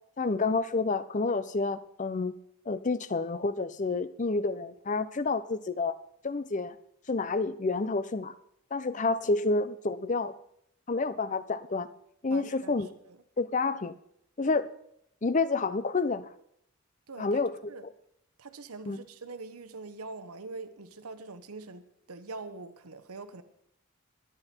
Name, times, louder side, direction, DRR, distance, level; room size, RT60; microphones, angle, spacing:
voice 1, 0.2-2.3 2.7-6.0 6.2-6.8 7.1-8.3 8.7-10.3 10.9-11.9 12.2-12.9 13.4-13.9 14.4-14.7 15.2-16.3 17.2-17.5 17.8-17.9 18.9-19.0, left 3 dB, 35° left, 0.5 m, -29 dB
voice 2, 12.3-13.2 17.1-17.4 17.7-17.9 18.4-23.4, right 3 dB, 85° right, 1.0 m, -44 dB
21.0 x 8.9 x 4.4 m
head